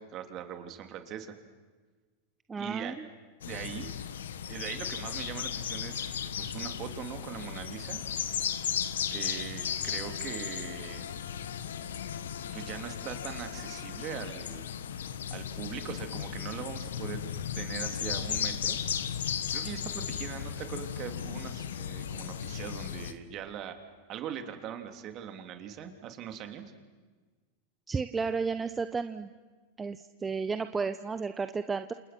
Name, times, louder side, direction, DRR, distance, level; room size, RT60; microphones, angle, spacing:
voice 1, 0.0-1.3 2.6-2.9 3.4-3.9 4.5-6.1 6.4-8.0 9.1-11.0 12.5-14.7 15.3-18.8 19.5-23.8 24.1-26.6, right 9 dB, 40° right, 6 dB, 3.2 m, -41 dB
voice 2, 2.5-2.9 27.9-29.3 29.8-31.9, right 4 dB, 15° right, 10 dB, 0.9 m, -32 dB
sound 1, 3.4-23.1, left 8 dB, 80° left, 1.4 m, -35 dB
28.0 x 28.0 x 6.2 m, 1.4 s
hypercardioid pair, 100°, 0 cm